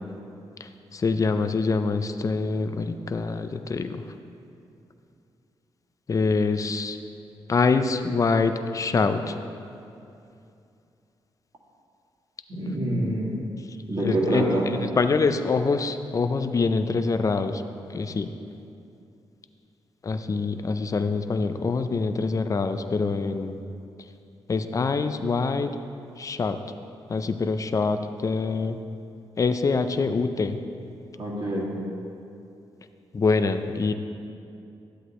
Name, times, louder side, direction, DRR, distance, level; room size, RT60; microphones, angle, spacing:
voice 1, 0.6-4.0 6.1-7.0 7.5-9.4 14.0-17.6 17.9-18.3 20.0-23.6 24.5-25.7 26.2-26.6 27.1-28.8 29.4-30.6 33.1-33.9, left 4 dB, 35° left, 9 dB, 0.5 m, -25 dB
voice 2, 12.5-13.4 13.8-14.7 31.1-31.7, right 1 dB, 55° right, -4 dB, 2.1 m, -26 dB
11.5 x 8.0 x 3.2 m, 2.6 s
cardioid pair, 85°, 9 cm